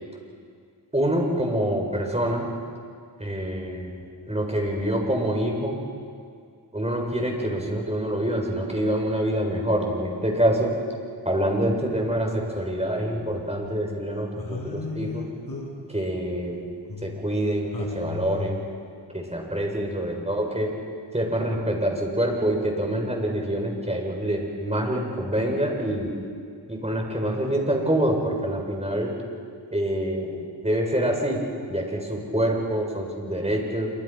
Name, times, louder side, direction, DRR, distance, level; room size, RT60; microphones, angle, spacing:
voice 1, 0.9-2.5 3.2-5.8 6.7-10.8 11.2-15.3 15.9-16.6 17.0-18.6 19.1-20.7 21.1-26.1 26.7-29.2 29.7-31.4 31.7-33.9, right 1 dB, 15° right, 1 dB, 7.5 m, -26 dB
sound 1, 12.6-14.0 14.4-17.5 17.7-18.7, left 4 dB, 50° left, 6.5 m, -37 dB
27.5 x 25.5 x 6.1 m, 2.2 s
cardioid pair, 45°, 45 cm